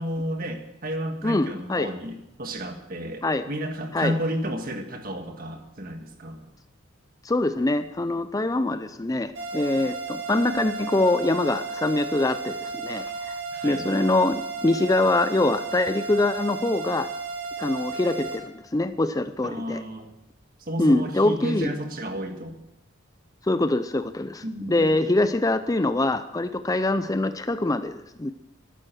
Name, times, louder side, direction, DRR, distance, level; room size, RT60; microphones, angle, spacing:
voice 1, 0.0-6.4 13.5-13.9 19.4-20.1 20.6-22.6 24.4-25.0, equal, 45° right, 5 dB, 1.7 m, -32 dB
voice 2, 1.2-1.9 3.2-3.4 3.9-4.2 7.2-13.3 13.6-17.1 17.6-19.8 20.8-21.7 23.5-28.3, left 2 dB, 20° left, 11 dB, 0.5 m, -24 dB
sound 1, 9.3-18.4, right 4 dB, 80° right, 6.4 m, -34 dB
13.5 x 12.0 x 6.3 m, 0.87 s
head